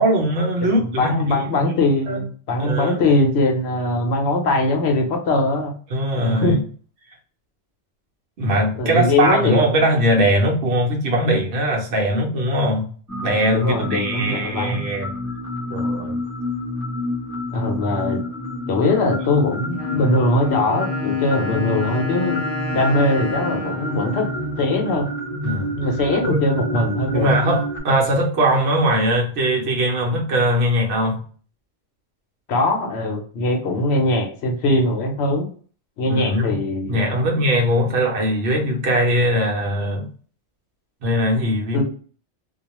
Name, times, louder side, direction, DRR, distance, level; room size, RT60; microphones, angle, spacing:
voice 1, 0.0-1.8 2.1-2.2 2.6-3.0 5.9-6.6 8.4-12.9 13.2-15.1 15.7-16.1 25.4-25.7 26.2-26.4 27.1-31.2 36.0-36.6 36.9-40.1 41.0-41.8, right 1 dB, 65° right, -1 dB, 0.9 m, -20 dB
voice 2, 0.6-5.7 6.2-6.6 8.8-9.6 13.5-14.8 17.5-18.2 18.7-22.4 22.7-24.3 24.6-25.1 25.8-27.3 32.5-35.5 36.0-37.3 41.7-41.8, left 2 dB, 70° left, 3 dB, 0.9 m, -21 dB
sound 1, 13.1-27.8, left 1 dB, 10° left, 0.8 m, -28 dB
Wind instrument woodwind instrument, 19.7-25.5, equal, 10° right, 0.5 m, -33 dB
2.3 x 2.3 x 2.9 m, 0.43 s
omnidirectional pair, 1.2 m